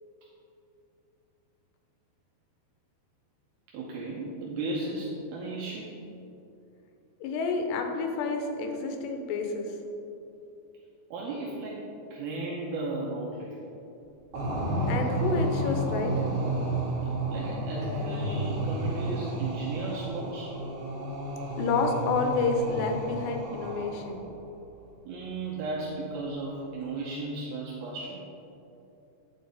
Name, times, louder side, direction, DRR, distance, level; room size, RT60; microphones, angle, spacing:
voice 1, 3.7-6.0 11.1-13.6 17.3-20.6 25.1-28.3, right 2 dB, 75° right, -4 dB, 2.4 m, -35 dB
voice 2, 7.2-9.7 14.9-16.2 21.6-24.2, left 4 dB, 90° left, 4 dB, 3.0 m, -29 dB
sound 1, 14.3-24.2, right 1 dB, 55° right, 3.1 m, -31 dB
9.0 x 6.6 x 4.0 m, 2.8 s
omnidirectional pair, 4.8 m